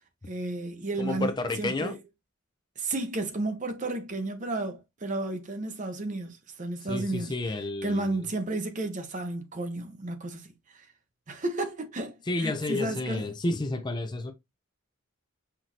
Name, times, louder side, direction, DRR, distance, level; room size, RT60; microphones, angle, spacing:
voice 1, 0.3-1.3 1.6-2.0 2.8-7.3 7.8-10.9 11.3-13.3, right 2 dB, 35° right, 0.7 m, -32 dB
voice 2, 1.0-1.9 6.9-8.2 12.3-14.3, left 2 dB, 20° left, 0.4 m, -31 dB
5.7 x 2.6 x 3.0 m
head